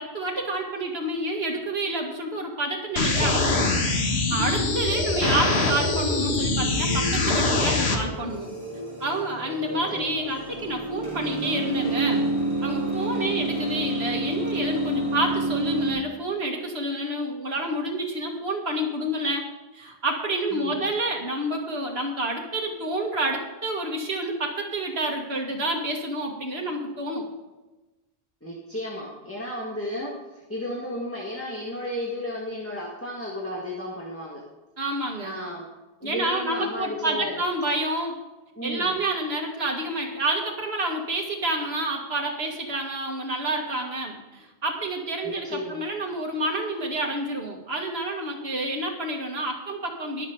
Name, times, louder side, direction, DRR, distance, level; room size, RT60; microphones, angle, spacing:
voice 1, 0.0-3.8 4.1-8.5 9.0-12.3 12.6-19.4 19.7-27.3 34.8-35.3 36.0-38.2 38.6-50.3, right 1 dB, 75° right, 0 dB, 2.3 m, -29 dB
sound 1, 3.0-8.0, left 2 dB, 90° left, 1.9 m, -23 dB
sound 2, 4.3-15.9, right 2 dB, 30° right, 4.7 m, -30 dB
voice 2, 9.6-10.1 13.1-13.4 20.5-20.8 28.4-34.4 35.2-35.7 36.0-37.4 38.6-39.0 45.2-45.8, left 1 dB, 15° left, -4 dB, 1.9 m, -34 dB
21.5 x 7.2 x 3.9 m, 1.1 s
omnidirectional pair, 1.1 m